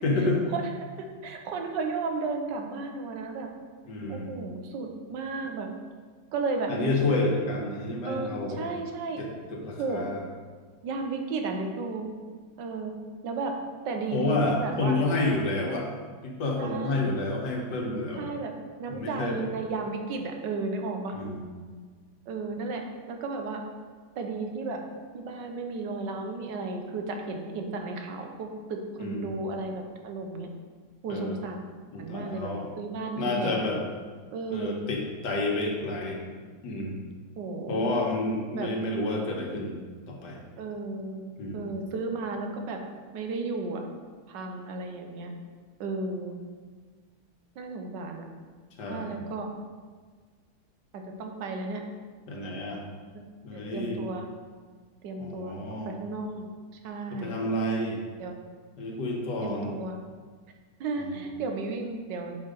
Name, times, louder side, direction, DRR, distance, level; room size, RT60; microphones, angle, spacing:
voice 1, 0.0-0.4 3.9-4.3 6.7-8.6 9.2-10.2 14.1-15.9 16.2-18.3 18.9-19.5 21.1-21.4 29.0-29.4 31.1-31.4 31.9-32.7 33.2-33.8 34.5-36.2 36.6-37.0 37.7-39.8 40.1-40.4 41.4-41.7 48.8-49.2 52.3-52.8 53.4-54.0 55.2-55.9 57.1-58.0 58.8-59.8 61.0-61.3, left 2 dB, 80° left, 0 dB, 1.7 m, -29 dB
voice 2, 1.2-3.5 4.1-5.7 6.3-6.7 8.0-8.3 8.6-9.2 9.8-10.1 10.8-12.1 12.6-12.9 13.2-13.5 13.8-15.0 16.6-17.1 18.2-18.5 18.8-21.1 22.3-22.8 23.1-23.6 24.2-24.8 25.1-30.5 31.0-31.6 32.0-33.7 34.3-34.8 37.4-37.9 38.5-38.7 40.6-41.2 41.5-42.8 43.1-43.9 44.3-45.3 45.8-46.4 47.6-48.3 48.9-49.5 50.9-51.8 53.1-53.2 53.5-54.3 55.0-55.6 55.9-56.5 56.8-57.4 58.2-58.4 59.4-60.0 60.8-62.4, right 3 dB, 90° right, 3 dB, 1.5 m, -33 dB
5.7 x 4.7 x 5.1 m, 1.6 s
omnidirectional pair, 1.8 m